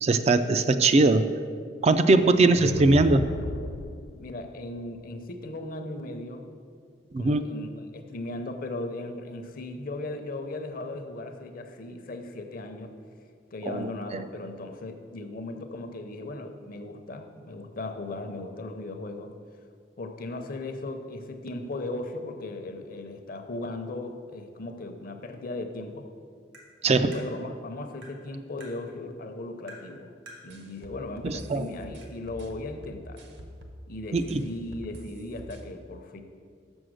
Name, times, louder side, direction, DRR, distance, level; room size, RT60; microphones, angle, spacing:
voice 1, 0.0-1.2 1.8-3.3 7.1-7.5 13.7-14.2 26.8-27.1 31.2-31.6 34.1-34.4, right 3 dB, 35° right, 9 dB, 0.3 m, -21 dB
voice 2, 2.2-2.6 4.2-6.5 7.2-12.9 13.5-19.3 20.0-26.1 26.8-30.1 30.4-33.2 33.9-36.2, left 2 dB, 50° left, 6 dB, 0.7 m, -37 dB
sound 1, 2.4-4.3, left 3 dB, 85° left, 0.4 m, -34 dB
Tap, 26.5-26.7 27.1-27.3 28.0-28.2 28.6-28.7 29.7-29.9 30.3-30.4 31.4-31.5 32.0-32.1, right 1 dB, 90° right, 2.1 m, -47 dB
sound 2, 30.5-33.8 34.2-35.6, equal, 65° right, 1.0 m, -45 dB
6.7 x 6.3 x 6.2 m, 2.1 s
head